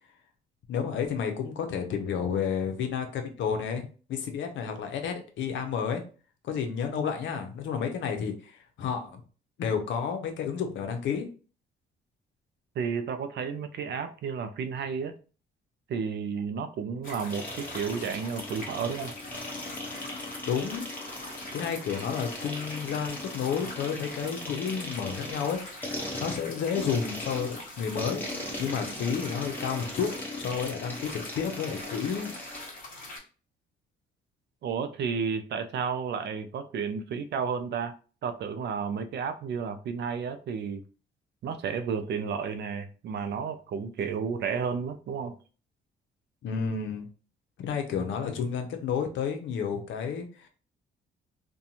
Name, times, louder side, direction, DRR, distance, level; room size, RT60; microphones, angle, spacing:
voice 1, 0.7-6.0 6.4-9.2 9.6-11.3 20.5-20.9 21.5-28.2 28.6-30.1 30.4-32.3 46.4-47.1 47.6-50.5, left 7 dB, 75° left, 5 dB, 0.6 m, -31 dB
voice 2, 12.8-15.1 15.9-19.1 34.6-37.9 38.2-40.8 41.4-45.4, right 6 dB, 60° right, 9 dB, 0.4 m, -32 dB
sound 1, 17.0-33.2, left 2 dB, 45° left, 1.2 m, -43 dB
sound 2, 17.3-32.7, left 1 dB, 10° left, 0.8 m, -39 dB
2.5 x 2.2 x 2.8 m, 0.37 s
cardioid pair, 90°, 20 cm